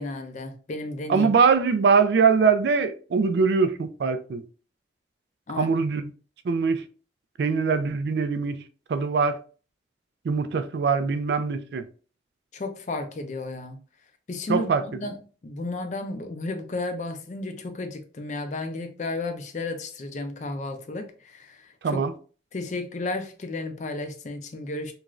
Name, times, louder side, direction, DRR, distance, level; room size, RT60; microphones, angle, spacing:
voice 1, 0.0-1.3 5.5-5.8 12.5-13.8 14.3-15.2 15.4-22.0 22.5-24.9, left 2 dB, 40° left, 0.4 m, -33 dB
voice 2, 1.1-4.4 5.5-6.1 6.4-6.8 7.4-8.6 8.9-9.4 10.2-11.9 14.5-15.0 21.8-22.1, right 5 dB, 65° right, 0.3 m, -22 dB
3.0 x 2.4 x 2.4 m
head